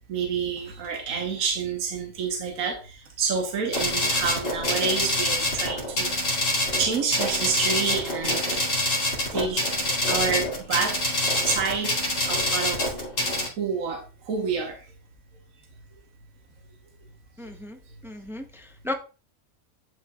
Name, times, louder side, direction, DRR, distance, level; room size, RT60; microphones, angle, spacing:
voice 1, 0.1-6.1 6.7-8.7 9.3-9.7 10.1-11.0 11.4-12.0 12.3-12.9 13.6-14.8, right 5 dB, 65° right, 1.6 m, -28 dB
sound 1, 3.7-13.5, left 1 dB, 55° left, 3.1 m, -26 dB
voice 2, 17.4-17.8 18.0-18.9, left 2 dB, 5° right, 0.3 m, -35 dB
11.0 x 5.6 x 2.3 m
omnidirectional pair, 1.6 m